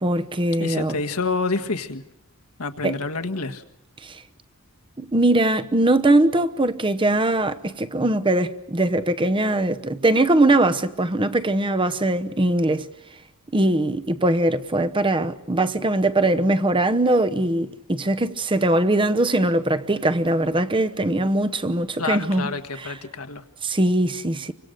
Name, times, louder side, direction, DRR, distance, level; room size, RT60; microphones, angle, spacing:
voice 1, 0.0-1.0 2.8-3.0 4.0-4.2 5.0-12.9 13.5-22.5 22.8-23.0 23.6-24.5, right 1 dB, 25° right, 1.0 m, -21 dB
voice 2, 0.6-2.0 2.6-3.6 22.0-23.4, left 3 dB, 80° left, 1.6 m, -28 dB
29.5 x 25.0 x 6.6 m
head